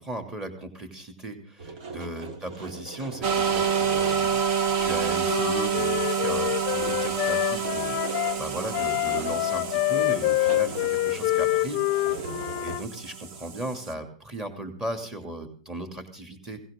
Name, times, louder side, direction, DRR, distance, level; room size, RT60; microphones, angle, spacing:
voice 1, 0.0-11.8 12.6-16.6, right 1 dB, 15° right, 6 dB, 2.8 m, -37 dB
sound 1, 1.6-4.4 4.7-4.9 5.2-6.0 6.3-12.8, right 3 dB, 55° right, 2.6 m, -41 dB
sound 2, 3.2-13.9, right 7 dB, 40° right, 1.2 m, -29 dB
Wind instrument woodwind instrument, 4.8-8.4 8.7-12.9, left 19 dB, 40° left, 0.7 m, -27 dB
21.0 x 18.0 x 3.8 m, 0.38 s
supercardioid pair, 160°, 4 cm